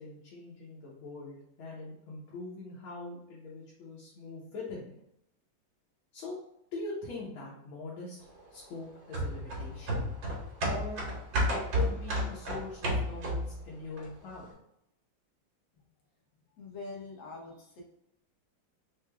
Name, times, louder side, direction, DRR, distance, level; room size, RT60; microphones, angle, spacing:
voice 1, 0.0-4.9 6.1-6.3 6.7-8.2 8.5-10.0 10.6-11.0 11.5-14.5, left 3 dB, 90° left, -7 dB, 1.9 m, -42 dB
sound 1, 9.1-13.6 14.0-14.1, equal, 75° right, 1.8 m, -31 dB
voice 2, 16.6-17.8, left 3 dB, 70° left, -2 dB, 1.6 m, -44 dB
4.4 x 3.2 x 2.2 m, 0.80 s
omnidirectional pair, 2.2 m